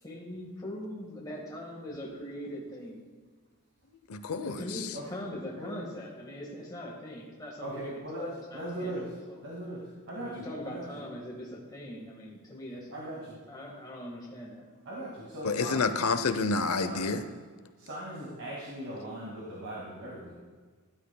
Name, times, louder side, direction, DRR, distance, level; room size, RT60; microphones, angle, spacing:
voice 1, 0.0-3.0 4.4-8.9 9.3-9.4 10.2-13.2 13.5-14.7, left 1 dB, 20° left, -4 dB, 1.6 m, -41 dB
voice 2, 4.1-4.5 15.4-17.2, left 4 dB, 80° left, 10 dB, 0.7 m, -28 dB
voice 3, 7.6-9.1 9.4-9.8 10.1-10.9 12.9-13.4 14.9-16.0 16.8-17.2 17.8-20.3, right 1 dB, 55° right, -4 dB, 2.2 m, -39 dB
14.5 x 11.5 x 2.3 m, 1.5 s
head